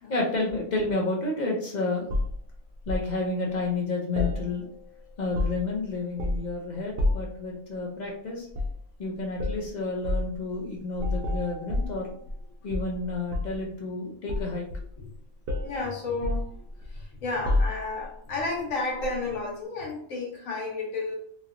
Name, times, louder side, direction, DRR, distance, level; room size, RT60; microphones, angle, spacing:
voice 1, 0.1-2.1 2.9-4.6 5.2-8.5 9.0-12.2 12.6-14.7, left 3 dB, 55° left, -1 dB, 0.5 m, -30 dB
sound 1, 2.1-3.1 4.1-4.9 5.2-5.8 6.2-6.5 7.0-7.4 8.5-8.8 9.4-9.6 10.0-10.3 11.0-12.4 12.7-13.6 14.3-15.1 15.5-15.8 16.2-17.0 17.4-18.1 19.0-19.2, left 2 dB, 60° right, 0.6 m, -29 dB
voice 2, 15.6-16.5 16.9-21.2, left 3 dB, 85° left, -1 dB, 1.3 m, -32 dB
3.0 x 2.8 x 2.5 m, 0.63 s
omnidirectional pair, 1.4 m